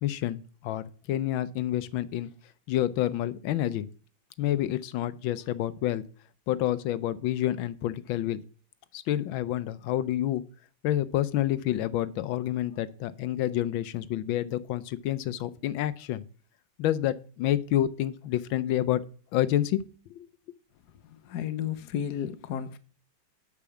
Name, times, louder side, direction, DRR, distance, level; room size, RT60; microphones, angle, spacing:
voice 1, 0.0-2.3 2.7-3.9 4.4-6.0 6.5-8.4 8.9-10.4 10.8-16.2 16.8-19.0 19.3-19.8 20.2-20.3, left 13 dB, 90° left, 1.5 m, -28 dB
voice 2, 21.0-22.8, left 9 dB, 60° left, 1.4 m, -33 dB
8.5 x 6.0 x 7.1 m
omnidirectional pair, 2.1 m